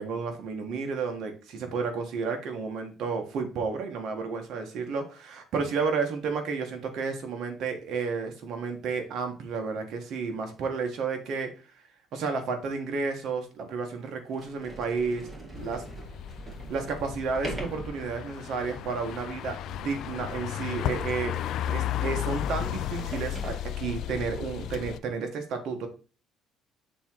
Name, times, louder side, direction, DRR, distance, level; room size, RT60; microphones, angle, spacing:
voice 1, 0.0-11.5 12.1-15.8 16.7-21.4 21.6-25.9, right 5 dB, 65° right, 4 dB, 1.5 m, -32 dB
Sliding door, 13.7-13.8 14.3-24.2, right 1 dB, 20° right, 2.1 m, -43 dB
sound 1, 15.5-25.0, left 11 dB, 70° left, 0.4 m, -34 dB
6.9 x 3.7 x 4.6 m, 0.34 s
cardioid pair, 105°, 0 cm